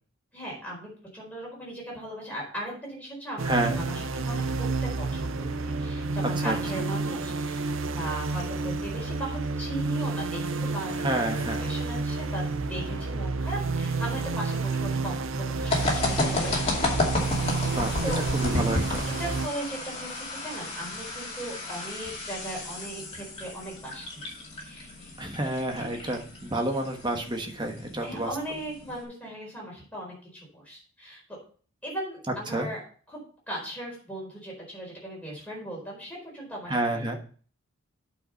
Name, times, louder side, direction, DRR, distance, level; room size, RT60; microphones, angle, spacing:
voice 1, 0.3-16.0 16.3-18.2 19.2-25.1 25.5-26.2 28.0-31.4 31.8-32.8 33.1-33.2 33.5-37.2, right 1 dB, 5° left, -3 dB, 4.4 m, -38 dB
voice 2, 3.4-3.8 6.4-6.6 11.0-11.7 17.7-18.0 18.3-19.1 25.2-28.3 32.5-32.7 36.7-37.2, right 1 dB, 20° right, 4 dB, 1.2 m, -29 dB
sound 1, 3.4-19.5, right 3 dB, 65° right, 0.6 m, -30 dB
sound 2, 15.7-29.0, left 2 dB, 30° left, 2.4 m, -32 dB
8.8 x 5.1 x 5.5 m, 0.43 s
head